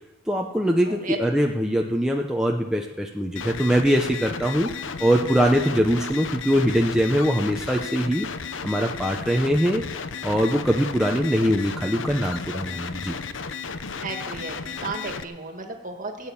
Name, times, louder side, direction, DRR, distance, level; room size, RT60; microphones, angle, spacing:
voice 1, 0.3-4.7 5.0-8.3 8.6-9.8 10.2-13.2, equal, 5° right, 1 dB, 0.7 m, -22 dB
voice 2, 0.8-1.2 14.0-16.3, right 3 dB, 40° right, 4 dB, 1.8 m, -34 dB
sound 1, 3.4-15.2, left 5 dB, 70° left, 0.8 m, -34 dB
17.5 x 8.8 x 7.2 m, 1.1 s
head